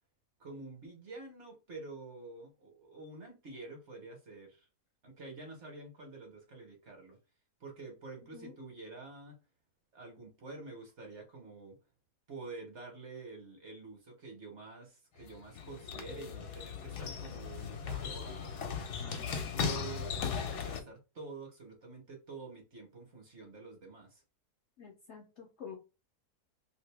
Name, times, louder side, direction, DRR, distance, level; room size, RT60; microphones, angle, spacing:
voice 1, 0.4-4.7 5.0-7.2 7.6-9.4 9.9-11.8 12.3-18.5 19.0-24.2, right 3 dB, 50° right, 1.1 m, -48 dB
sound 1, 15.2-20.8, left 6 dB, 80° left, 1.3 m, -37 dB
voice 2, 19.0-19.4 24.8-25.8, left 7 dB, 60° left, 0.8 m, -49 dB
2.8 x 2.6 x 3.3 m
omnidirectional pair, 1.7 m